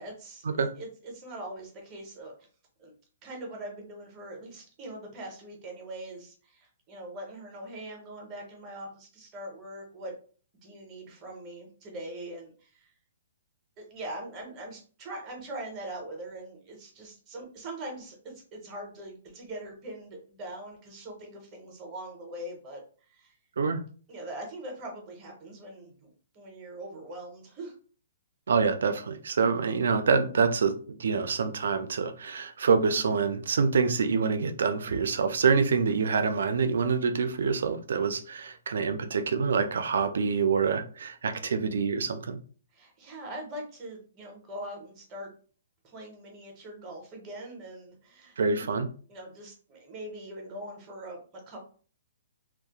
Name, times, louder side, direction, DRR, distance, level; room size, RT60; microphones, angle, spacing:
voice 1, 0.0-2.3 2.8-2.9 3.2-10.1 10.6-12.9 13.8-22.8 23.1-23.3 24.1-27.7 42.7-45.3 45.8-48.7 49.1-51.2 51.5-51.6, right 1 dB, 15° right, 1 dB, 0.5 m, -42 dB
voice 2, 28.5-42.4 48.4-48.9, right 5 dB, 65° right, 8 dB, 0.4 m, -26 dB
2.4 x 2.0 x 2.8 m, 0.41 s
hypercardioid pair, 175°, 0 cm